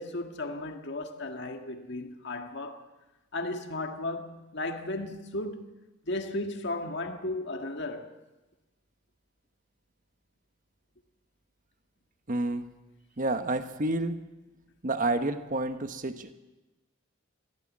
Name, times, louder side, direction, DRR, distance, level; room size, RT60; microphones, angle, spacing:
voice 1, 0.0-2.8 3.3-5.7 6.0-8.1, left 2 dB, 55° left, 1.8 m, -35 dB
voice 2, 12.3-12.6 13.2-14.2 14.8-16.3, right 2 dB, 40° right, 1.1 m, -29 dB
23.0 x 15.5 x 7.5 m
head